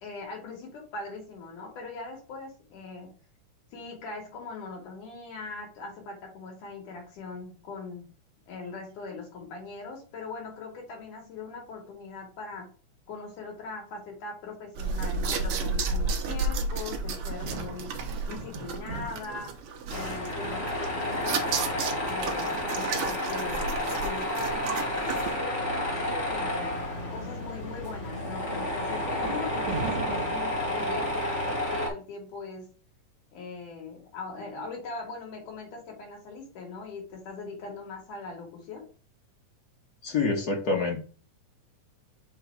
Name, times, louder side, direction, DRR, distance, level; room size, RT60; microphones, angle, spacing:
voice 1, 0.0-3.2 3.7-8.1 8.5-12.7 13.1-17.9 18.3-19.6 19.9-23.7 24.0-26.8 27.1-32.7 33.3-38.9, left 4 dB, 75° left, -1 dB, 3.8 m, -40 dB
sound 1, 14.8-25.3, right 4 dB, 70° right, 1.4 m, -32 dB
sound 2, 16.9-19.9 20.6-20.7 21.2-24.8 25.3-25.5 25.8-26.2 26.6-27.3 29.2-30.3, right 3 dB, 50° right, 2.3 m, -41 dB
Tools, 19.9-31.9, left 1 dB, 30° left, 1.4 m, -31 dB
voice 2, 40.0-41.0, left 4 dB, 55° left, 0 dB, 1.0 m, -26 dB
6.6 x 3.0 x 4.6 m, 0.37 s
omnidirectional pair, 3.7 m